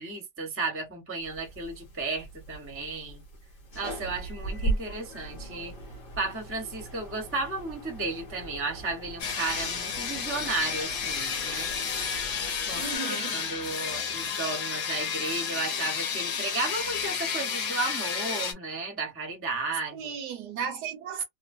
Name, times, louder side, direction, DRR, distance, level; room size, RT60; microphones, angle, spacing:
voice 1, 0.0-3.2 3.7-5.7 6.2-11.7 12.7-12.8 13.1-20.1, right 3 dB, 15° right, 0.5 m, -34 dB
sound 1, 1.2-13.0, right 2 dB, 40° left, 0.9 m, -39 dB
sound 2, 9.2-18.5, left 6 dB, 60° left, 1.1 m, -31 dB
voice 2, 12.8-13.4 19.9-21.2, right 6 dB, 70° right, 1.0 m, -35 dB
3.1 x 2.1 x 2.5 m
omnidirectional pair, 2.0 m